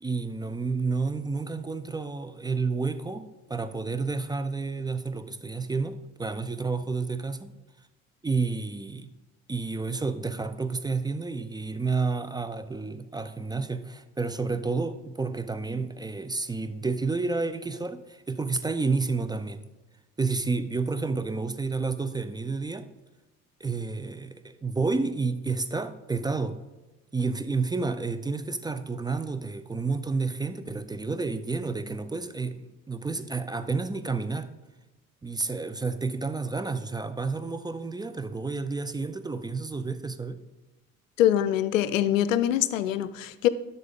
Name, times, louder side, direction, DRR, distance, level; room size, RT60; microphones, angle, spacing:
voice 1, 0.0-7.5 8.2-9.1 9.5-19.6 20.2-22.9 23.6-26.6 27.1-34.5 35.2-40.4, right 4 dB, 10° right, 10 dB, 0.5 m, -30 dB
voice 2, 41.2-43.5, left 11 dB, 75° left, 14 dB, 0.6 m, -24 dB
11.0 x 6.8 x 3.6 m, 1.1 s
figure-of-eight pair, 55°, 39 cm